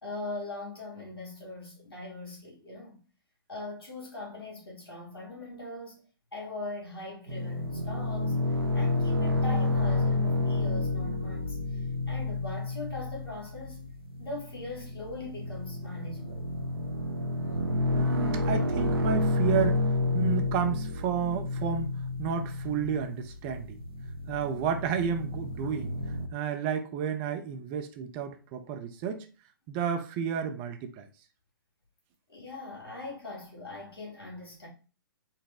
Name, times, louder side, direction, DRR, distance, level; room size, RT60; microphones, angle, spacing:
voice 1, 0.0-3.0 3.5-6.0 6.3-8.4 8.7-13.8 14.2-16.4 32.3-34.7, left 2 dB, 80° left, 1.7 m, -41 dB
sound 1, 7.3-26.3, left 2 dB, 75° right, 0.8 m, -30 dB
voice 2, 17.9-19.9 20.1-23.8 24.3-26.0 26.3-29.3 29.7-31.1, right 7 dB, 30° right, 0.5 m, -31 dB
4.0 x 2.1 x 3.5 m
figure-of-eight pair, 120°, 12 cm